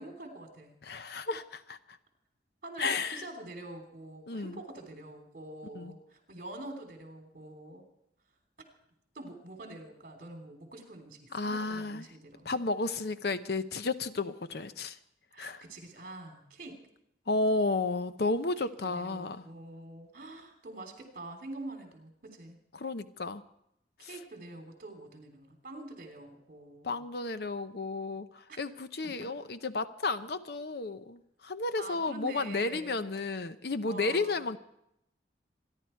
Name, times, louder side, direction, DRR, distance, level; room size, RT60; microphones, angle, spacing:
voice 1, 0.0-0.7 2.6-7.8 9.1-12.6 15.3-16.7 18.8-22.6 24.0-27.0 28.5-28.6 31.8-33.0 33.8-34.4, right 2 dB, 50° right, 4 dB, 3.3 m, -45 dB
voice 2, 0.8-2.0 2.8-3.2 4.3-4.6 5.7-5.9 11.3-12.1 12.4-15.0 15.4-15.6 17.3-19.5 22.7-23.4 24.0-24.2 26.8-34.6, left 3 dB, 60° left, 12 dB, 0.7 m, -33 dB
27.0 x 11.0 x 4.5 m, 0.78 s
head